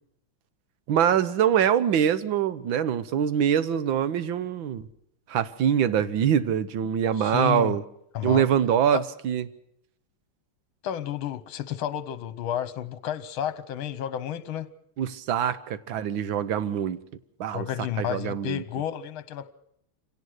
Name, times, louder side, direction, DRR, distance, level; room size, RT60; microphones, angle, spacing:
voice 1, 0.9-4.9 5.3-7.8 8.2-9.5 15.0-17.0 17.4-17.7 18.0-18.6, right 9 dB, 70° right, 1.7 m, -24 dB
voice 2, 7.2-7.8 8.1-8.4 8.9-9.0 10.8-14.7 17.5-19.5, left 10 dB, 75° left, 1.8 m, -31 dB
26.0 x 17.5 x 6.4 m
omnidirectional pair, 2.3 m